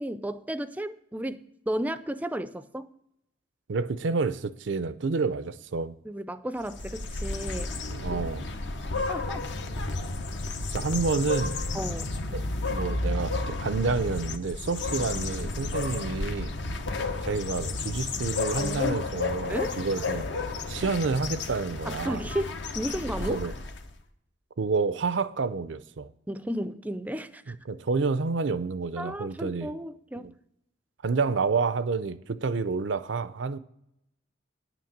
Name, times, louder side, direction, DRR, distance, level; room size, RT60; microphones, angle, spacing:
voice 1, 0.0-2.9 6.0-7.7 9.1-9.4 11.7-12.1 16.7-16.8 19.5-19.8 20.8-20.9 21.9-23.4 26.3-27.6 29.0-30.3, right 1 dB, 10° right, 0.4 m, -33 dB
voice 2, 3.7-5.9 7.9-8.5 10.7-11.6 12.3-16.5 17.2-20.3 20.7-22.2 23.3-23.5 24.6-26.1 27.7-29.7 30.2-30.3 31.0-33.6, right 4 dB, 80° right, 0.5 m, -29 dB
sound 1, 6.6-23.9, left 3 dB, 70° left, 0.9 m, -32 dB
9.9 x 6.0 x 7.3 m
head